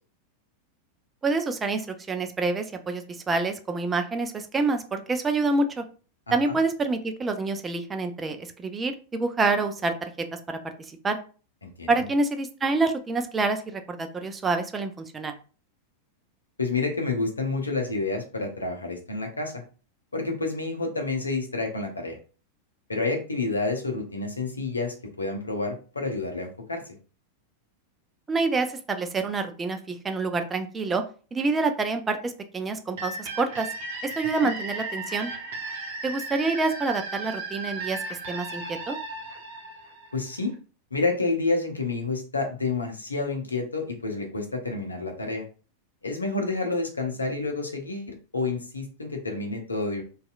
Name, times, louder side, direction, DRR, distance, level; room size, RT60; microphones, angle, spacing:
voice 1, 1.2-5.8 6.3-10.6 11.0-11.2 11.9-15.3 28.3-31.0 31.3-33.7 34.0-35.3 36.0-39.0, right 3 dB, 15° right, 6 dB, 0.3 m, -27 dB
voice 2, 6.3-6.6 11.6-11.9 16.6-19.5 20.1-22.2 22.9-26.8 34.4-34.5 40.1-40.5 40.9-45.4 46.0-50.0, left 3 dB, 80° left, 2 dB, 0.6 m, -29 dB
sound 1, 33.0-40.5, right 3 dB, 55° right, 0.8 m, -35 dB
2.7 x 2.3 x 2.3 m, 0.37 s
figure-of-eight pair, 90°, 0 cm